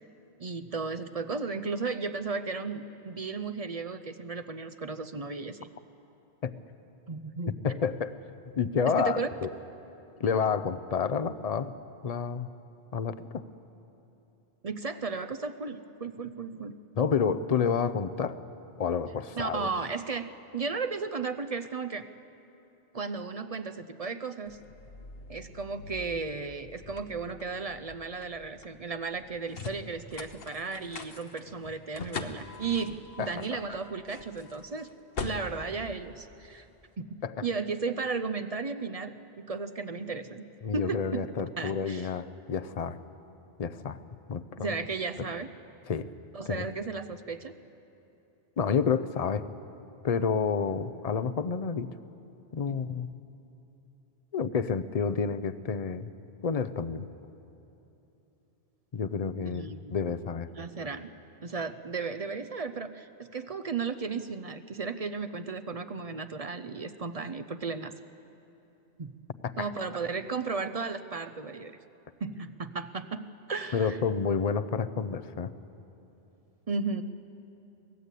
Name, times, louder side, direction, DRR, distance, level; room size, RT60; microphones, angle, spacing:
voice 1, 0.4-5.7 7.1-7.6 8.9-9.3 14.6-16.8 19.3-22.1 22.9-24.6 25.3-34.9 35.2-36.7 37.0-41.3 41.6-42.1 44.6-45.5 46.3-47.5 52.7-52.8 59.4-59.9 60.5-61.1 61.4-67.9 69.0-69.1 69.6-71.8 72.2-74.0 76.7-77.0, right 4 dB, 40° right, 9 dB, 0.6 m, -35 dB
voice 2, 7.6-8.1 8.6-9.5 10.2-11.7 12.0-12.5 12.9-13.4 17.0-18.4 18.8-19.7 33.2-33.3 37.2-37.4 40.6-43.0 43.6-44.0 44.3-44.7 45.9-46.1 46.5-46.6 48.6-49.4 50.0-51.9 52.5-53.1 54.3-56.1 56.4-57.1 58.9-60.5 69.4-69.7 73.7-75.5, left 6 dB, 40° left, 13 dB, 0.7 m, -29 dB
sound 1, 24.5-36.8, left 5 dB, 60° left, 1.3 m, -43 dB
23.5 x 18.0 x 8.3 m, 3.0 s
omnidirectional pair, 1.1 m